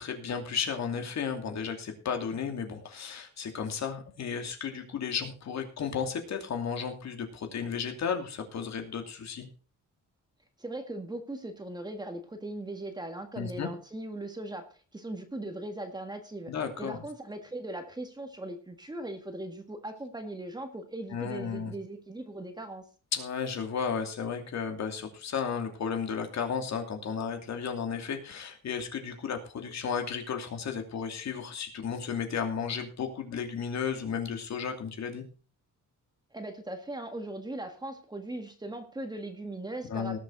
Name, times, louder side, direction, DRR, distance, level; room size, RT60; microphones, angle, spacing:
voice 1, 0.0-9.5 13.4-13.7 16.5-17.0 21.1-21.7 23.1-35.2 39.9-40.2, left 6 dB, 55° left, 5 dB, 2.7 m, -33 dB
voice 2, 10.6-14.7 14.9-16.5 16.8-22.9 36.3-40.2, right 1 dB, 15° right, 6 dB, 1.7 m, -39 dB
19.0 x 7.4 x 4.1 m, 0.36 s
wide cardioid pair, 175°, 32 cm